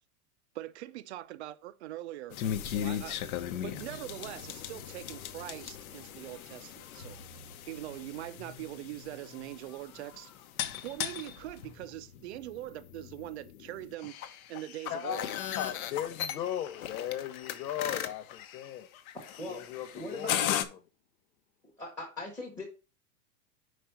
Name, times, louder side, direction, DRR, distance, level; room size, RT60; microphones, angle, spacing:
voice 1, 0.5-7.2 7.7-10.3 10.8-14.2 14.5-15.3, right 15 dB, 45° right, 0.5 m, -42 dB
sound 1, 2.3-20.6, left 10 dB, 65° left, 1.0 m, -38 dB
voice 2, 14.9-18.9 19.5-20.5, left 10 dB, 90° left, 0.9 m, -37 dB
voice 3, 19.9-20.5 21.8-22.6, left 1 dB, 5° left, 1.0 m, -40 dB
5.2 x 4.9 x 5.7 m
supercardioid pair, 160°, 47 cm